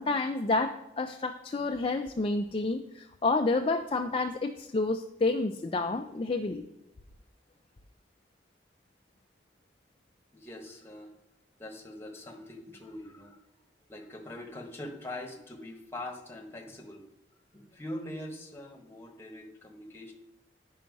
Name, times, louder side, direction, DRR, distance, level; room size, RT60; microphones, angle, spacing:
voice 1, 0.0-6.6, left 3 dB, 30° left, 5 dB, 0.4 m, -29 dB
voice 2, 10.3-11.1 11.6-13.4 13.9-17.0 17.5-20.1, left 1 dB, 15° left, 2 dB, 1.4 m, -43 dB
10.0 x 5.6 x 5.2 m, 0.91 s
head